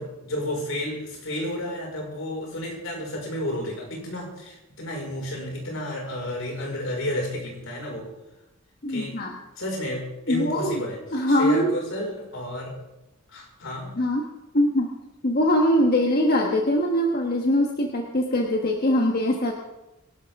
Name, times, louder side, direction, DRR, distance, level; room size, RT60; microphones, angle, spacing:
voice 1, 0.0-8.1 8.9-9.2 9.6-11.0 11.3-12.8 13.3-14.0, left 1 dB, 75° left, -1 dB, 5.2 m, -31 dB
voice 2, 8.8-9.4 10.3-10.8 11.1-11.7 14.0-14.9 15.2-19.5, left 1 dB, 50° left, 1 dB, 1.4 m, -22 dB
24.0 x 12.0 x 3.7 m, 0.96 s
head